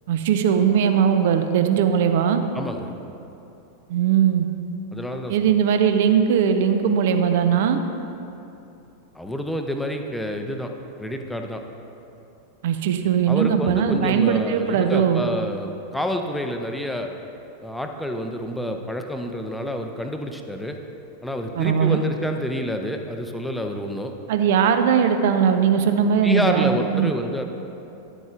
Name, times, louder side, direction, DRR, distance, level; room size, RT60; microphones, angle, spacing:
voice 1, 0.1-2.4 3.9-4.5 5.3-7.8 12.6-15.2 21.5-22.0 24.3-27.1, right 8 dB, 55° right, 7 dB, 0.5 m, -19 dB
voice 2, 2.5-2.9 4.9-5.5 9.1-10.7 11.0-11.6 13.3-17.1 17.6-20.8 21.2-24.1 26.2-27.4, left 1 dB, 5° left, 4 dB, 0.6 m, -28 dB
10.5 x 7.8 x 2.5 m, 2.8 s
figure-of-eight pair, 90°, 0 cm